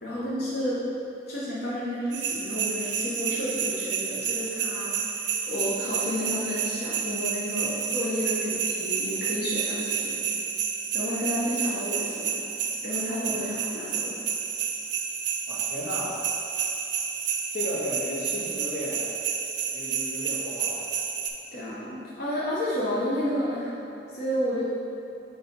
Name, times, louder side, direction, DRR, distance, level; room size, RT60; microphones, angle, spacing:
voice 1, 0.0-0.9 1.3-5.0 5.5-10.2 10.9-12.5 12.8-14.2 21.5-23.7 24.1-24.7, equal, 55° left, -9 dB, 0.9 m, -31 dB
sound 1, 2.1-21.3, right 7 dB, 65° right, 0.5 m, -30 dB
voice 2, 13.3-13.6 15.5-16.2 17.5-19.1 19.7-20.9, left 1 dB, 80° left, -6 dB, 1.2 m, -35 dB
4.5 x 4.2 x 5.2 m, 2.8 s
head